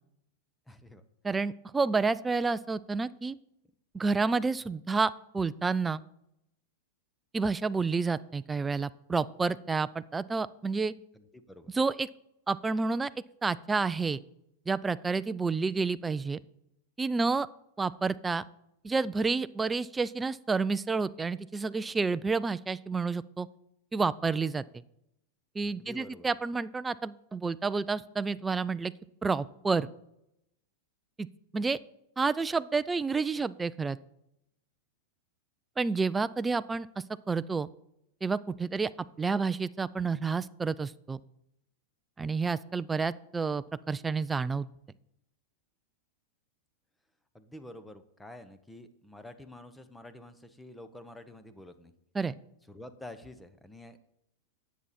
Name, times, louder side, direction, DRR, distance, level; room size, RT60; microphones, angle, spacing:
voice 1, 0.7-1.0 11.1-11.7 25.6-26.3 47.3-51.9 52.7-54.0, left 1 dB, 5° left, 11 dB, 0.9 m, -48 dB
voice 2, 1.2-3.4 3.9-6.0 7.3-10.9 11.7-12.1 12.5-13.1 13.4-14.2 14.7-16.4 17.0-17.5 17.8-18.4 18.8-23.5 23.9-24.6 25.6-28.9 29.2-29.9 31.2-31.3 31.5-31.8 32.2-34.0 35.8-37.7 38.2-38.9 39.2-41.2 42.2-44.7 52.2-52.3, right 4 dB, 15° right, 15 dB, 0.4 m, -29 dB
10.0 x 8.2 x 4.3 m, 0.82 s
hypercardioid pair, 125°, 0 cm